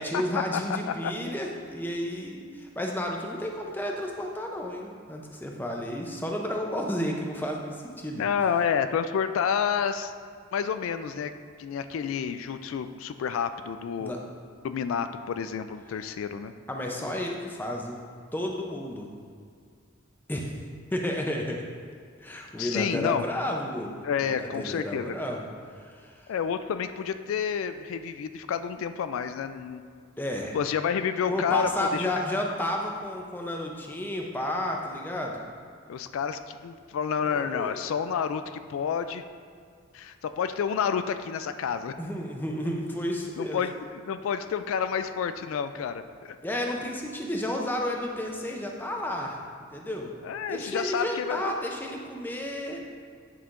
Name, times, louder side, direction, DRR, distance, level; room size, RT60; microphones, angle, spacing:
voice 1, 0.0-8.3 14.0-14.2 16.7-18.0 18.3-19.1 20.3-20.6 20.9-21.6 22.2-26.3 30.2-30.6 31.3-35.4 37.2-37.7 42.0-43.6 46.4-49.4 49.7-50.1 50.5-52.8, left 1 dB, 10° left, 0 dB, 0.5 m, -32 dB
voice 2, 0.9-1.3 8.2-10.1 10.5-11.3 11.6-14.1 14.6-16.5 22.6-23.2 24.0-25.1 26.3-29.8 30.5-32.1 35.9-39.2 39.9-41.9 43.4-46.4 50.2-51.5, left 7 dB, 80° left, 10 dB, 0.3 m, -29 dB
9.5 x 5.6 x 2.5 m, 2.1 s
head